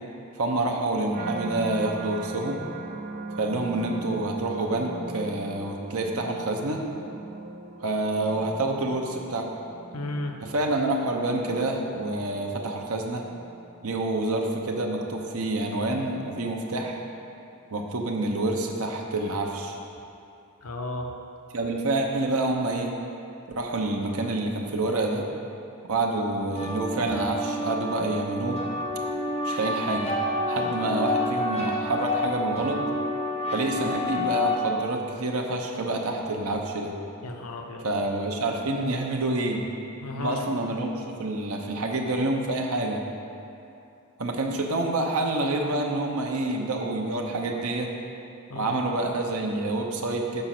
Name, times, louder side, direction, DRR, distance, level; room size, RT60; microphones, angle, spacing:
voice 1, 0.4-2.6 3.4-6.8 7.8-9.5 10.4-13.2 13.8-17.0 17.7-19.8 21.5-22.9 23.6-25.3 25.9-28.6 29.4-30.2 30.5-32.8 33.5-37.0 37.8-39.6 40.2-43.0 44.2-47.9 48.5-50.4, right 2 dB, 75° right, 1 dB, 0.8 m, -27 dB
sound 1, 1.1-16.3 16.8-17.3, right 3 dB, 35° right, 0.5 m, -40 dB
voice 2, 9.9-10.4 20.6-21.1 37.2-37.9 40.0-40.5 48.5-48.9, left 2 dB, 80° left, 3 dB, 0.7 m, -33 dB
sound 2, 26.6-34.5, left 1 dB, 30° left, 1.3 m, -29 dB
6.7 x 5.0 x 5.9 m, 2.7 s
head